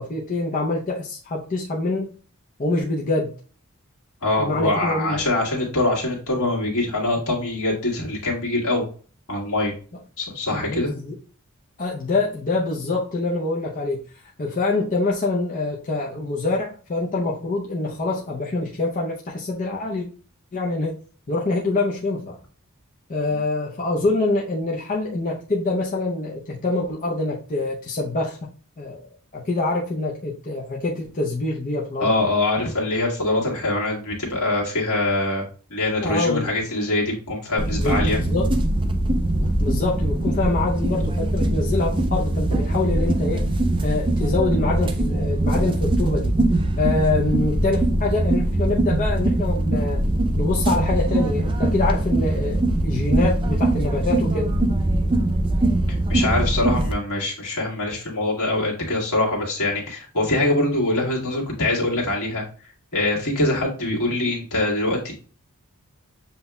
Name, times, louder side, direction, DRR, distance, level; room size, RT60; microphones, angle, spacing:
voice 1, 0.0-2.1 2.6-3.3 4.4-5.2 10.5-11.2 11.8-14.0 14.4-20.1 20.5-21.0 21.3-22.4 23.1-28.5 28.8-29.0 29.3-32.1 36.0-36.5 37.7-38.5 39.4-43.4 43.8-46.4 46.8-50.0 50.4-54.5, left 2 dB, 40° left, -3 dB, 0.6 m, -25 dB
voice 2, 4.2-8.9 9.3-9.7 10.2-10.9 23.3-23.4 32.0-35.4 35.7-38.2 55.9-62.4 62.9-65.1, left 2 dB, 75° left, -4 dB, 1.7 m, -23 dB
sound 1, 37.6-56.9, right 1 dB, 25° right, 0.4 m, -22 dB
7.1 x 2.7 x 2.2 m, 0.40 s
head